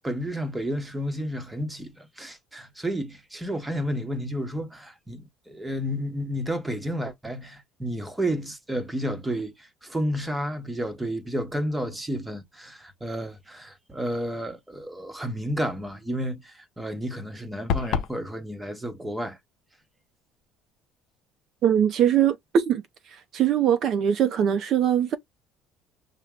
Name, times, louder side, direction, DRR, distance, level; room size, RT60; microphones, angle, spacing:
voice 1, 0.0-19.4, equal, 10° right, 0.9 m, -31 dB
sound 1, 17.7-18.2, left 7 dB, 65° left, 0.6 m, -26 dB
voice 2, 21.6-22.8 23.1-25.2, right 9 dB, 50° right, 0.5 m, -22 dB
5.7 x 2.1 x 3.6 m
cardioid pair, 125°, 0 cm